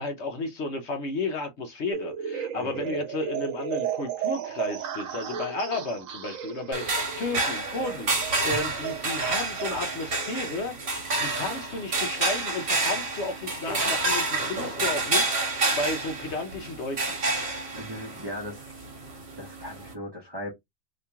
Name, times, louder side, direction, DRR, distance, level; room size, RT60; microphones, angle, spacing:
voice 1, 0.0-17.1, left 2 dB, 60° left, 1.0 m, -33 dB
sound 1, 1.9-10.6, right 8 dB, 75° right, 1.1 m, -35 dB
voice 2, 2.6-3.0 17.7-18.8 19.1-20.5, equal, 20° right, 1.0 m, -38 dB
sound 2, 6.7-19.9, right 3 dB, 50° right, 1.5 m, -29 dB
2.9 x 2.8 x 3.4 m
omnidirectional pair, 1.4 m